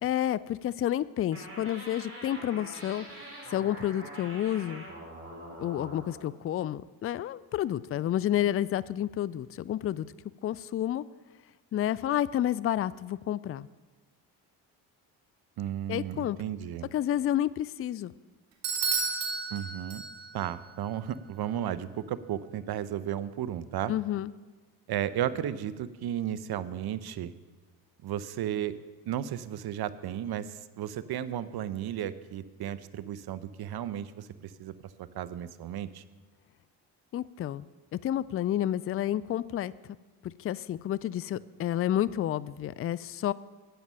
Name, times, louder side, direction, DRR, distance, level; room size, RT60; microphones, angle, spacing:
voice 1, 0.0-3.0 3.5-4.9 5.6-10.1 10.4-11.0 11.7-13.7 15.9-16.4 16.9-18.1 23.9-24.3 37.1-37.7 37.9-39.7 40.2-43.3, left 11 dB, 30° left, 19 dB, 0.4 m, -30 dB
sound 1, 1.3-6.3, right 1 dB, 30° right, 4.8 m, -44 dB
voice 2, 15.6-16.9 19.5-20.0 20.3-23.9 24.9-27.3 28.0-28.7 29.1-34.7 35.1-36.0, right 10 dB, 55° right, 14 dB, 0.8 m, -34 dB
Bell / Doorbell, 18.6-20.5, right 4 dB, 90° right, 1.7 m, -32 dB
12.5 x 8.7 x 5.6 m, 1.3 s
supercardioid pair, 60°, 47 cm